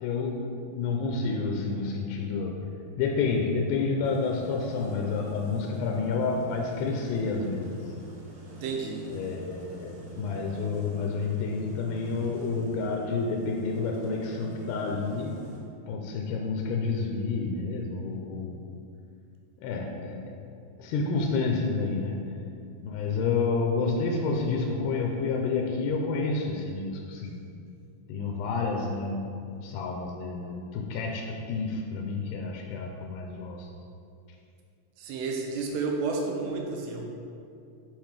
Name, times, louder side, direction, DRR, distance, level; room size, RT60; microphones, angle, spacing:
voice 1, 0.0-2.6 3.0-7.8 9.1-15.3 15.9-18.6 19.6-20.4 20.8-22.4 22.8-27.4 28.1-33.7, left 4 dB, 85° left, 1 dB, 2.7 m, -29 dB
sound 1, 4.0-15.6, right 4 dB, 70° right, 1.5 m, -45 dB
voice 2, 8.5-9.1 35.0-37.1, right 4 dB, 90° right, 1 dB, 3.1 m, -31 dB
9.3 x 4.4 x 4.8 m, 2.5 s
omnidirectional pair, 4.9 m